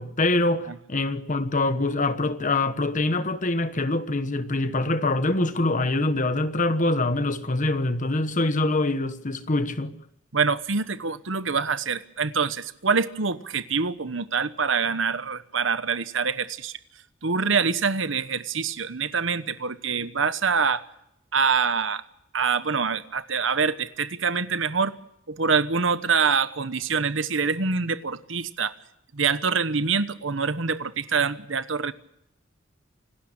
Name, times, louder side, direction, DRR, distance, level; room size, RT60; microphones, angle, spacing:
voice 1, 0.0-9.9, left 2 dB, 40° left, 1.2 m, -24 dB
voice 2, 10.3-16.8 17.2-20.8 21.3-22.0 22.3-24.9 25.3-28.7 29.1-31.9, right 5 dB, 70° right, 1.1 m, -25 dB
27.0 x 12.5 x 8.8 m
head